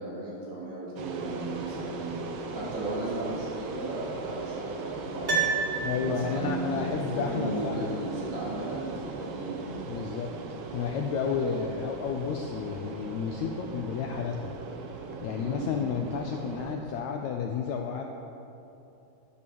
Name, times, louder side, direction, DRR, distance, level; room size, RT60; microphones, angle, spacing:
voice 1, 0.0-5.3 5.7-6.8 7.1-8.9 9.2-9.6 15.3-15.6, right 2 dB, 50° right, -7 dB, 4.5 m, -35 dB
sound 1, 1.0-16.8, right 4 dB, 70° right, 1.4 m, -39 dB
Piano, 5.2-6.5 6.8-6.9, right 5 dB, 30° right, 1.1 m, -29 dB
voice 2, 5.8-7.9 9.9-10.3 10.7-14.4 15.2-18.0, left 6 dB, 80° left, 3 dB, 1.6 m, -31 dB
10.5 x 9.7 x 6.9 m, 2.8 s
omnidirectional pair, 4.0 m